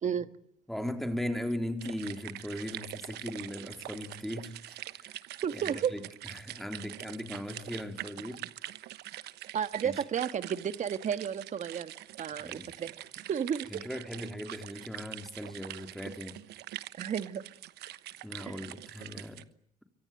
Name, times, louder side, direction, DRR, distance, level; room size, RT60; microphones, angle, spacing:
voice 1, 0.7-5.2 5.5-8.4 9.8-10.0 12.4-12.7 13.7-16.4 18.2-19.4, left 1 dB, ahead, 3.6 m, -38 dB
sound 1, 1.8-19.4, right 14 dB, 75° right, 1.1 m, -44 dB
voice 2, 5.4-5.9 9.5-11.9 12.2-12.9 13.3-13.7 16.9-17.4 18.5-18.6, right 8 dB, 45° right, 1.7 m, -32 dB
27.0 x 24.5 x 9.1 m
cardioid pair, 110°, 17 cm